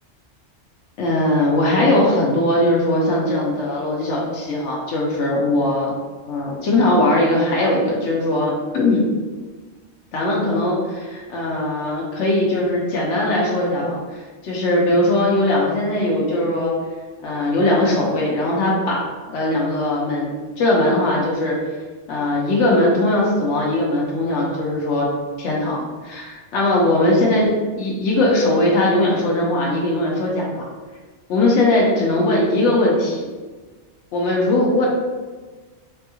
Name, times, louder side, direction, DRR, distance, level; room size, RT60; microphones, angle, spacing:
voice 1, 1.0-5.9 6.3-9.0 10.1-16.7 17.2-19.0 19.3-21.6 22.1-25.1 25.4-27.5 27.8-30.6 31.3-33.2 34.1-34.9, left 1 dB, 85° left, -4 dB, 1.0 m, -19 dB
3.3 x 2.3 x 2.9 m, 1.4 s
omnidirectional pair, 1.2 m